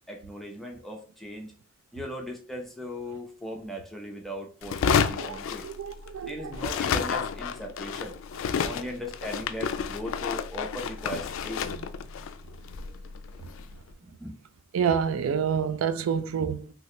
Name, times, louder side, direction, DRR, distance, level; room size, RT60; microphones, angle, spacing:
voice 1, 0.1-1.5 1.9-5.6 6.3-8.2 8.6-11.7 12.8-12.9 14.0-14.4, equal, ahead, 0.4 m, -38 dB
sound 1, 4.6-6.2 6.5-13.7, left 6 dB, 70° left, 0.3 m, -30 dB
voice 2, 5.2-6.7 11.7-11.8 14.7-16.7, right 7 dB, 85° right, 0.3 m, -28 dB
2.8 x 2.7 x 3.1 m
head